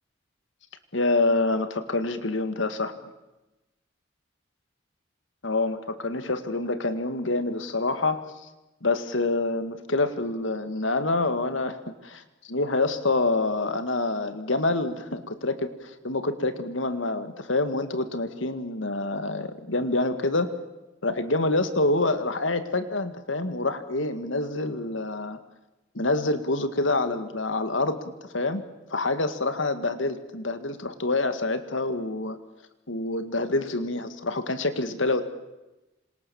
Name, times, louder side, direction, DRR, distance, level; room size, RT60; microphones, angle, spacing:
voice 1, 0.9-2.9 5.4-8.2 8.8-12.2 12.5-20.5 21.0-25.4 25.9-28.6 28.9-32.4 32.9-35.2, left 2 dB, 75° left, 10 dB, 2.1 m, -27 dB
27.5 x 26.5 x 7.2 m, 1.0 s
head